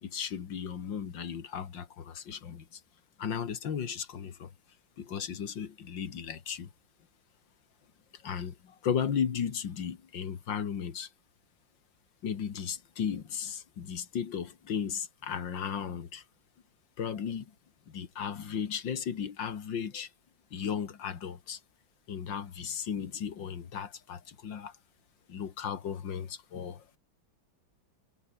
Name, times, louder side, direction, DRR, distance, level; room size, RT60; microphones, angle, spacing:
voice 1, 0.0-2.8 3.2-4.5 5.0-6.7 8.1-11.1 12.2-16.2 17.0-17.5 17.9-20.1 20.5-21.6 22.1-24.8 25.3-26.8, left 7 dB, 75° left, 2.5 m, -35 dB
omnidirectional pair, 2.1 m